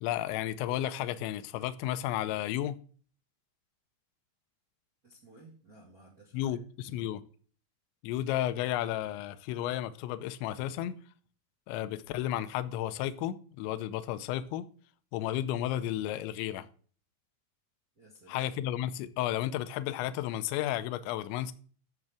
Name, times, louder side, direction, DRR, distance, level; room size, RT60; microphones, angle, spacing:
voice 1, 0.0-2.8 6.3-7.2 8.0-11.0 11.7-14.7 15.1-16.7 18.3-21.5, left 12 dB, 80° left, 2.9 m, -33 dB
voice 2, 5.0-6.6 6.9-7.1 17.9-18.5, right 2 dB, 70° right, 0.8 m, -56 dB
10.5 x 7.4 x 3.5 m
omnidirectional pair, 5.3 m